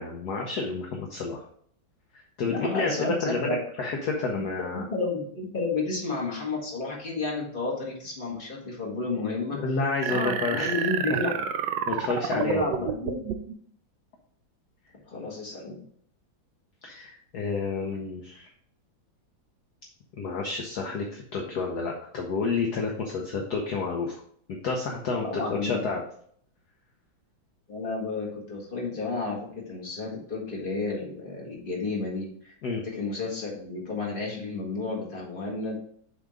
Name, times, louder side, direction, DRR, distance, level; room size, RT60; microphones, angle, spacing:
voice 1, 0.0-1.4 2.1-4.8 9.2-9.3 9.5-10.7 11.9-12.9 16.8-18.5 20.2-24.2 24.6-26.0 32.6-32.8, left 4 dB, 60° left, 0 dB, 1.3 m, -30 dB
voice 2, 2.4-3.6 4.7-9.6 10.1-11.3 12.3-13.2 15.0-15.8 25.2-25.8 27.7-32.5 32.8-35.8, left 3 dB, 25° left, -2 dB, 1.9 m, -31 dB
sound 1, 10.0-13.5, right 8 dB, 70° right, 1.2 m, -30 dB
7.1 x 3.6 x 4.9 m, 0.62 s
omnidirectional pair, 2.1 m